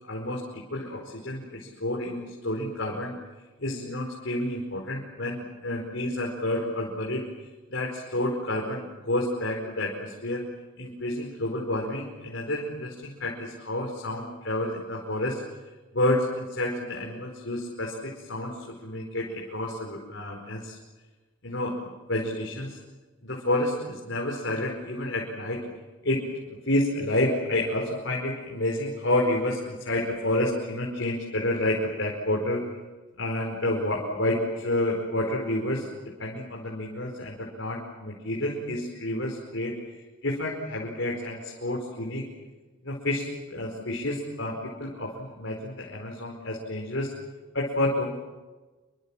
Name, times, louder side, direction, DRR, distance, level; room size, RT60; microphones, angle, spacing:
voice 1, 0.0-3.1 3.6-7.3 7.7-10.4 10.8-15.4 15.9-20.8 21.4-22.8 23.2-25.6 26.0-26.2 26.6-32.6 33.2-35.9 36.2-42.3 42.8-47.1 47.5-48.0, left 1 dB, 70° left, -1 dB, 5.0 m, -29 dB
28.0 x 25.0 x 7.5 m, 1.2 s
head